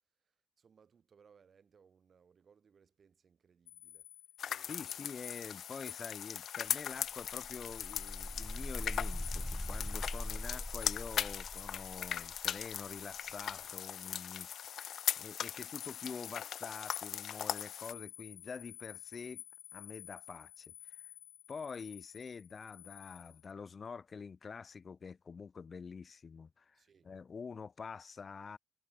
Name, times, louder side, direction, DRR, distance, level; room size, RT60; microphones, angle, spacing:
voice 1, 0.2-4.1 4.5-5.3 10.5-10.7 26.7-27.1, right 6 dB, 45° right, 7.0 m, -66 dB
sound 1, 3.7-23.5, left 14 dB, 85° left, 0.9 m, -52 dB
sound 2, 4.4-17.9, left 9 dB, 60° left, 1.1 m, -40 dB
voice 2, 4.7-19.4 19.7-21.0 21.5-28.6, left 5 dB, 40° left, 1.7 m, -47 dB
sound 3, 6.7-6.8 7.1-13.8, left 1 dB, 5° left, 0.8 m, -43 dB
cardioid pair, 90°, 0 cm